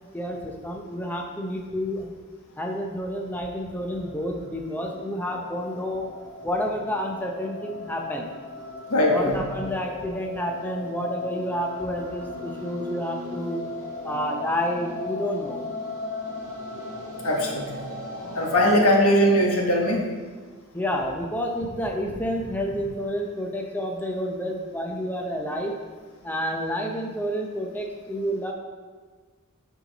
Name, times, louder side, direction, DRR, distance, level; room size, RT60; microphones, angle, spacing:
voice 1, 0.1-2.1 2.6-6.1 6.4-8.3 9.1-13.6 14.0-15.6 20.7-25.7 26.2-28.5, equal, 10° left, 1 dB, 0.7 m, -29 dB
sound 1, 3.2-18.7, left 2 dB, 15° right, 2.3 m, -37 dB
voice 2, 8.9-9.4 17.2-17.7 18.3-20.0, equal, 80° left, -1 dB, 1.3 m, -20 dB
9.1 x 4.6 x 4.0 m, 1.5 s
head